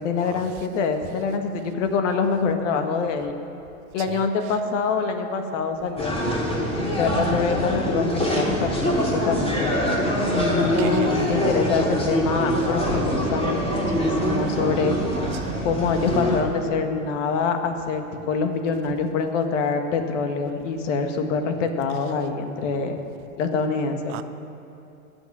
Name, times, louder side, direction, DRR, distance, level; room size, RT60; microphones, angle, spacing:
voice 1, 0.0-3.3 3.9-6.1 6.8-9.7 10.3-13.6 13.9-15.0 15.6-23.0 23.4-24.2, left 5 dB, 60° left, 1.7 m, -25 dB
sound 1, 6.0-16.4, equal, 15° left, 3.5 m, -24 dB
voice 2, 10.8-11.3 24.1-24.2, right 16 dB, 35° right, 0.4 m, -36 dB
17.0 x 6.2 x 9.8 m
hypercardioid pair, 95°, 41 cm